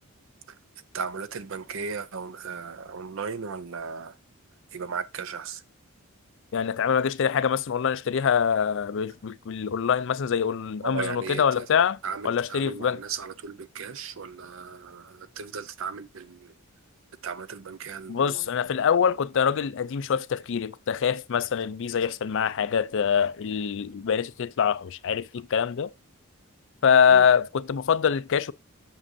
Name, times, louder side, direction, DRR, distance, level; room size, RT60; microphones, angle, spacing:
voice 1, 0.9-4.2 4.7-5.6 10.8-11.7 12.0-16.5 17.2-18.5 27.1-27.3, right 5 dB, 60° right, 0.6 m, -36 dB
voice 2, 6.5-12.0 12.2-13.0 18.1-25.9 26.8-28.5, left 7 dB, 55° left, 0.4 m, -24 dB
7.5 x 6.2 x 2.7 m
head